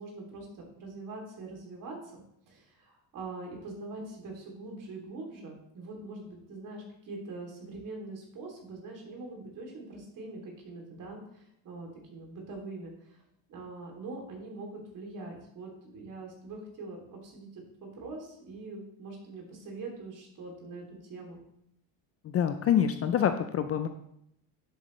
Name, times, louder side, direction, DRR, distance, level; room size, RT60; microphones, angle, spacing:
voice 1, 0.0-13.2 13.5-21.4, right 2 dB, 45° right, 0 dB, 3.0 m, -43 dB
voice 2, 22.3-23.9, left 9 dB, 35° left, 9 dB, 0.5 m, -26 dB
10.0 x 8.0 x 3.2 m, 0.74 s
cardioid pair, 145°, 43 cm